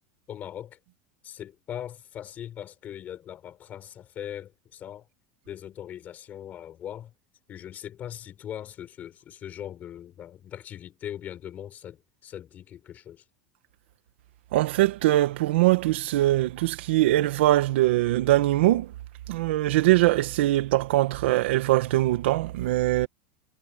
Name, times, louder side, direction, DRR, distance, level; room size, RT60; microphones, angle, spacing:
voice 1, 0.3-0.8 1.2-5.1 5.5-7.1 7.5-13.2, left 10 dB, 25° left, 5.3 m, -40 dB
voice 2, 14.5-18.9 19.3-23.1, right 16 dB, 80° right, 1.7 m, -22 dB
supercardioid pair, 165°, 6 cm